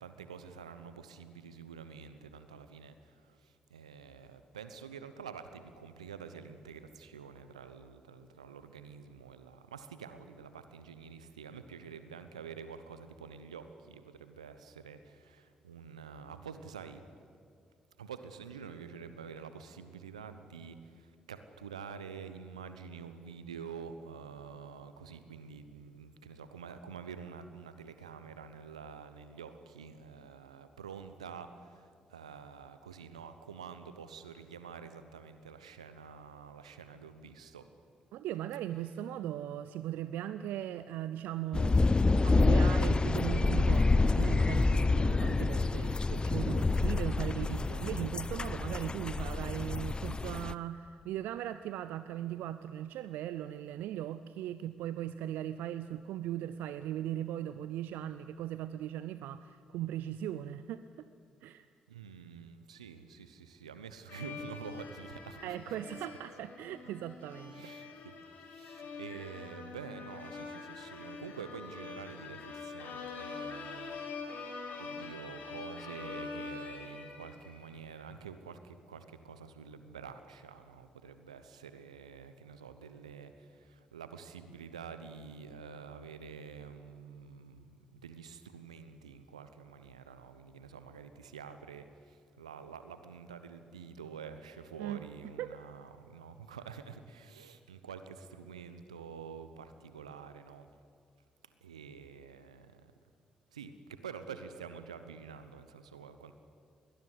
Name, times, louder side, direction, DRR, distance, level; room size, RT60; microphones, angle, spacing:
voice 1, 0.0-17.0 18.0-37.7 61.9-65.6 66.8-66.9 67.5-100.7 101.6-102.9 103.5-106.3, right 6 dB, 90° right, 10 dB, 0.9 m, -48 dB
voice 2, 38.1-41.8 42.2-61.1 61.4-61.7 65.4-68.0 94.8-95.0 95.4-95.6, right 12 dB, 70° right, 13 dB, 0.5 m, -38 dB
sound 1, 41.5-50.5, left 3 dB, 25° left, 0.7 m, -28 dB
sound 2, 64.1-77.8, left 4 dB, 60° left, 3.4 m, -45 dB
21.5 x 19.5 x 8.1 m, 2.4 s
hypercardioid pair, 40°, 3 cm